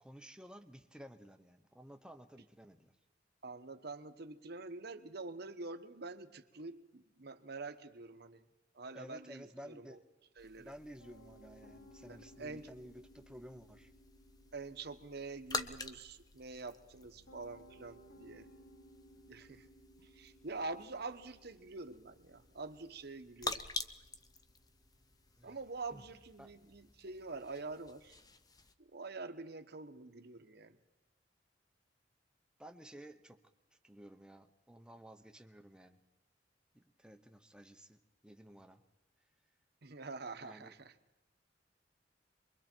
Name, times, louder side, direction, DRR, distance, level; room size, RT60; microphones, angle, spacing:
voice 1, 0.0-2.9 8.9-10.0 10.6-13.9 25.4-25.6 25.9-26.0 26.4-26.5 32.6-33.4 33.8-36.0 36.7-38.8 40.4-40.7, equal, 5° right, 7 dB, 1.0 m, -54 dB
voice 2, 3.4-8.4 8.7-10.0 10.4-10.7 12.1-12.7 14.5-18.5 19.3-19.7 20.0-23.6 25.4-28.2 28.8-30.8 39.8-40.9, right 3 dB, 60° right, 8 dB, 1.2 m, -46 dB
sound 1, 10.4-28.7, left 3 dB, 20° left, 0.8 m, -48 dB
Piano, 11.0-28.1, equal, 90° left, 4.8 m, -63 dB
27.5 x 22.5 x 4.6 m, 1.0 s
head